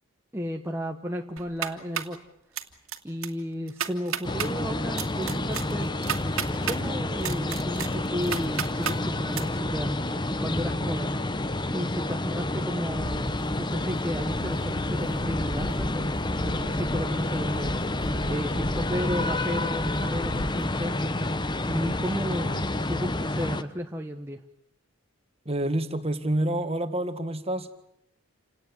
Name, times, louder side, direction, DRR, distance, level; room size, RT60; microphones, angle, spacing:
voice 1, 0.3-2.2 3.0-5.9 6.6-10.0 10.4-11.2 11.7-13.3 13.6-16.1 16.4-17.7 18.3-21.0 21.6-24.4, equal, 10° right, 2 dB, 1.1 m, -33 dB
sound 1, 1.4-2.2 2.6-3.0 3.2-3.3 3.7-4.5 5.0-6.8 7.2-9.0 9.3-9.4, right 8 dB, 70° right, 2.3 m, -31 dB
sound 2, 4.2-23.6, left 1 dB, 20° left, 1.0 m, -29 dB
sound 3, 12.9-20.7, equal, 85° left, 4.7 m, -38 dB
voice 2, 25.5-27.7, right 1 dB, 25° right, 9 dB, 1.8 m, -28 dB
29.0 x 18.0 x 9.9 m, 0.79 s
head